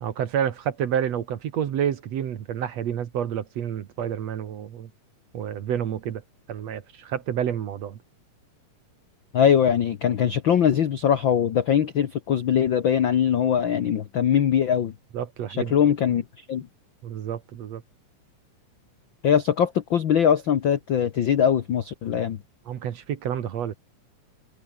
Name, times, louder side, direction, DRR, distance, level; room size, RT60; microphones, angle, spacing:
voice 1, 0.0-4.9 5.3-6.2 6.5-8.0 15.1-15.8 17.0-17.8 22.7-23.7, right 9 dB, 55° right, 2.3 m, -29 dB
voice 2, 9.3-14.9 15.5-16.2 16.5-16.7 19.2-22.4, left 8 dB, 80° left, 1.0 m, -21 dB
omnidirectional pair, 3.9 m